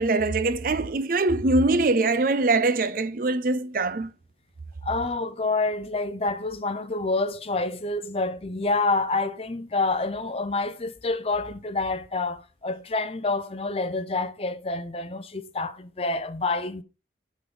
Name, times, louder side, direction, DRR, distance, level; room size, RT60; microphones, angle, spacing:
voice 1, 0.0-4.1, right 2 dB, 50° right, 0.5 m, -23 dB
voice 2, 4.8-16.8, left 3 dB, 30° left, 0.6 m, -28 dB
8.3 x 3.9 x 6.1 m
head